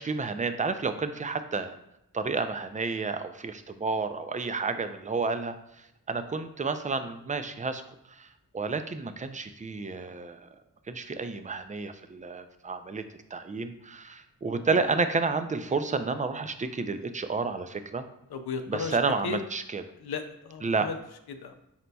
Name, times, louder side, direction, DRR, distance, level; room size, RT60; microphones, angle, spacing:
voice 1, 0.0-1.8 2.1-7.8 8.1-8.3 8.5-10.5 10.9-13.0 13.3-18.1 18.7-19.8 20.6-20.9, right 4 dB, 20° right, 9 dB, 0.3 m, -30 dB
voice 2, 18.3-19.4 20.0-21.0 21.3-21.5, left 5 dB, 80° left, 7 dB, 0.5 m, -35 dB
4.2 x 3.9 x 2.2 m, 0.83 s
cardioid pair, 45°, 38 cm